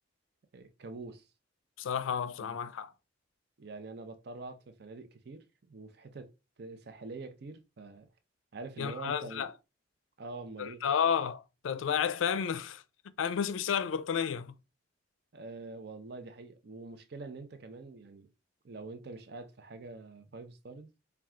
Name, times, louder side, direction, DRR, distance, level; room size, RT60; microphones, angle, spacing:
voice 1, 0.5-1.3 2.4-2.6 3.6-6.3 6.6-8.1 8.5-9.5 10.2-10.8 15.3-18.3 18.6-20.9, right 3 dB, 55° right, 0.5 m, -45 dB
voice 2, 1.8-2.9 8.8-9.5 10.6-12.8 13.2-14.5, left 7 dB, 90° left, 0.4 m, -31 dB
4.3 x 2.3 x 3.6 m
head